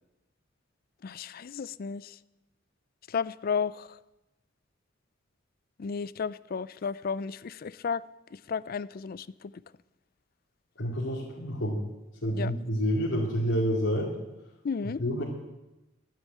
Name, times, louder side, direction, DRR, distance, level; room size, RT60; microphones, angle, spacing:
voice 1, 1.0-2.1 3.1-4.0 5.8-8.0 8.5-9.3 12.3-12.5 14.6-15.0, left 6 dB, 50° left, 18 dB, 0.4 m, -33 dB
voice 2, 10.8-11.8 12.2-14.1 14.8-15.2, equal, 85° left, -7 dB, 2.4 m, -28 dB
11.5 x 9.0 x 8.4 m, 0.99 s
head